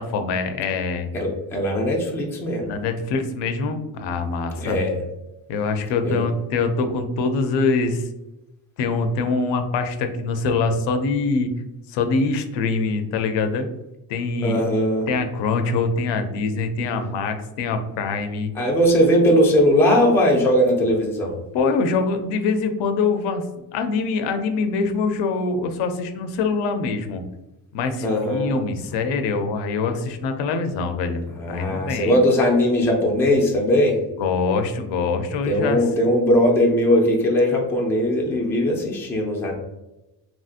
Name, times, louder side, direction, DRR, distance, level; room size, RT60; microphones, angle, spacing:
voice 1, 0.0-1.1 2.6-4.8 5.5-8.1 8.8-11.5 11.9-13.7 14.1-14.6 15.1-18.5 21.5-23.4 23.7-27.3 27.7-32.2 34.2-35.8, left 4 dB, 75° left, 7 dB, 0.5 m, -24 dB
voice 2, 1.1-2.7 4.6-5.0 6.0-6.2 14.4-15.1 18.5-21.4 28.0-28.5 31.4-34.0 35.4-39.5, equal, 5° left, -1 dB, 0.4 m, -19 dB
2.9 x 2.7 x 2.4 m, 0.97 s
cardioid pair, 135°, 43 cm